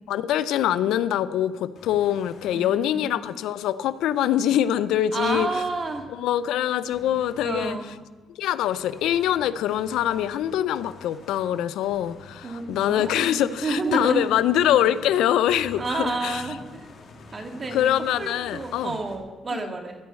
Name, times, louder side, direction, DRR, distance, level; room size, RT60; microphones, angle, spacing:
voice 1, 0.1-5.5 6.1-7.7 8.4-16.4 17.7-18.9 19.5-19.6, left 11 dB, 85° left, 15 dB, 0.5 m, -24 dB
sound 1, 1.8-2.6 5.2-6.1 6.9-7.8 8.6-15.1 15.5-19.2, left 3 dB, 60° left, 2.2 m, -47 dB
voice 2, 2.5-3.1 5.1-6.1 7.4-7.9 12.4-14.2 15.8-16.9 17.3-20.0, right 3 dB, 35° right, 5 dB, 1.9 m, -30 dB
14.5 x 6.3 x 8.1 m, 1.3 s
cardioid pair, 90°, 0 cm